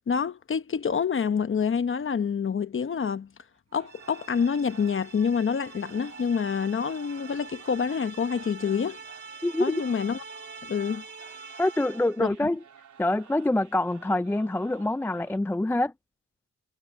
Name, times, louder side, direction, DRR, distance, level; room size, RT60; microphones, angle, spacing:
voice 1, 0.1-3.3 3.7-9.0 9.6-10.2 10.6-11.0 12.2-12.5, left 6 dB, 45° left, 1.0 m, -27 dB
Speech, 3.5-4.4 4.7-5.8 6.1-6.2 6.7-10.8 11.1-12.0, right 6 dB, 60° right, 5.9 m, -59 dB
sound 1, 3.8-15.4, right 8 dB, 85° right, 3.1 m, -53 dB
sound 2, 3.9-12.3, right 5 dB, 35° right, 2.6 m, -45 dB
voice 2, 9.4-9.8 11.6-12.6 13.0-15.9, left 1 dB, 10° left, 0.3 m, -26 dB
wide cardioid pair, 120°, 29 cm